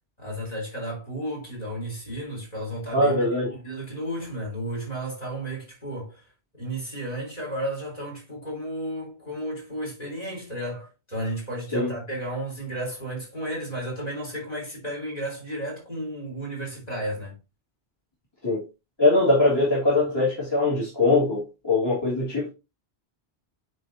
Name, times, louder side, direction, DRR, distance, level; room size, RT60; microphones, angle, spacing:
voice 1, 0.2-6.2 6.5-17.4, right 1 dB, 40° left, 3.7 m, -33 dB
voice 2, 2.9-3.5 11.7-11.9 18.4-18.6 19.0-22.5, left 2 dB, 25° left, 2.6 m, -22 dB
8.9 x 3.9 x 2.7 m
omnidirectional pair, 1.1 m